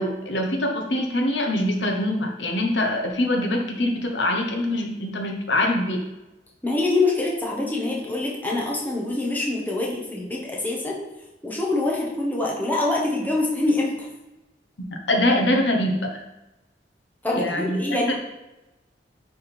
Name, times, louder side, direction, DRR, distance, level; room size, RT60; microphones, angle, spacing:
voice 1, 0.0-6.0 15.1-16.1 17.3-17.8 18.1-18.2, left 1 dB, 70° left, 2 dB, 1.2 m, -23 dB
voice 2, 6.6-11.0 11.4-13.9 17.2-18.2, left 2 dB, 10° left, -4 dB, 1.4 m, -25 dB
9.7 x 3.8 x 4.4 m, 1.0 s
head